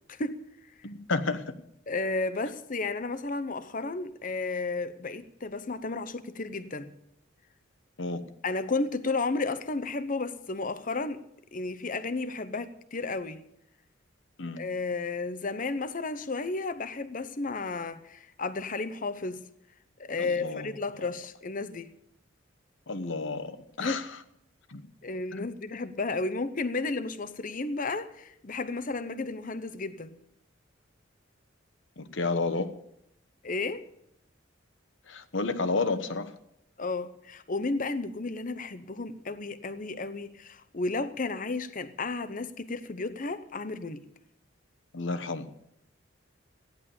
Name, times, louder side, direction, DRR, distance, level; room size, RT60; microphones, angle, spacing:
voice 1, 0.1-0.4 1.9-6.9 8.4-11.2 11.5-13.4 14.6-19.4 20.0-21.9 23.8-24.0 25.0-30.2 33.4-33.8 36.8-44.0, left 3 dB, 40° left, 0.9 m, -33 dB
voice 2, 0.8-1.5 8.0-8.2 14.4-14.6 20.2-20.7 22.9-24.1 24.7-24.8 25.3-25.5 32.0-32.7 35.1-36.3 44.9-45.5, left 3 dB, 65° left, 1.1 m, -31 dB
15.0 x 10.5 x 6.9 m
head